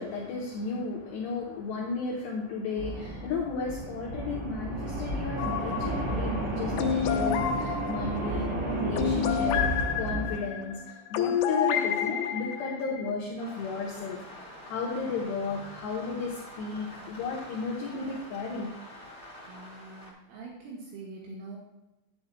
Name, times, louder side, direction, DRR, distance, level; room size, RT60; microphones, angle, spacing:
voice 1, 0.0-9.7 10.0-14.2 14.6-18.7, left 4 dB, 75° left, -2 dB, 2.6 m, -34 dB
sound 1, 2.8-10.3, right 1 dB, 45° right, 3.7 m, -32 dB
sound 2, 5.4-13.1, left 8 dB, 90° left, 3.4 m, -30 dB
sound 3, 13.4-20.1, left 1 dB, 50° left, 0.6 m, -46 dB
voice 2, 19.4-21.6, right 3 dB, 75° right, -4 dB, 3.6 m, -44 dB
11.0 x 9.4 x 2.2 m, 1.0 s
omnidirectional pair, 6.0 m